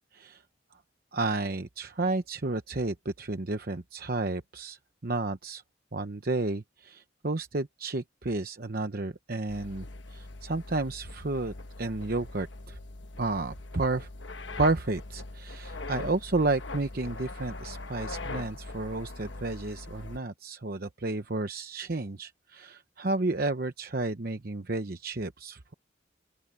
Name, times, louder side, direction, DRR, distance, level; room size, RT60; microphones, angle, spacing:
voice 1, 1.1-4.8 5.0-5.6 5.9-12.8 13.2-14.1 14.6-25.7, right 2 dB, 50° right, 0.9 m, -31 dB
sound 1, 9.5-20.2, left 2 dB, 70° left, 1.2 m, -41 dB
open air
head